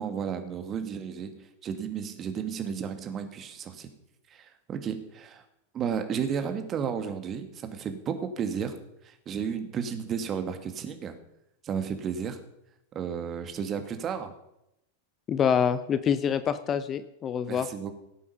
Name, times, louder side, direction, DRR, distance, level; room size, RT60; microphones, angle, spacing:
voice 1, 0.0-3.9 4.3-5.4 5.7-8.8 9.0-11.2 11.6-12.4 12.9-14.3 17.5-17.9, right 7 dB, 30° right, 8 dB, 1.8 m, -33 dB
voice 2, 15.3-17.7, left 8 dB, 25° left, 13 dB, 0.7 m, -26 dB
17.0 x 8.4 x 5.6 m, 0.84 s
figure-of-eight pair, 90°, 0 cm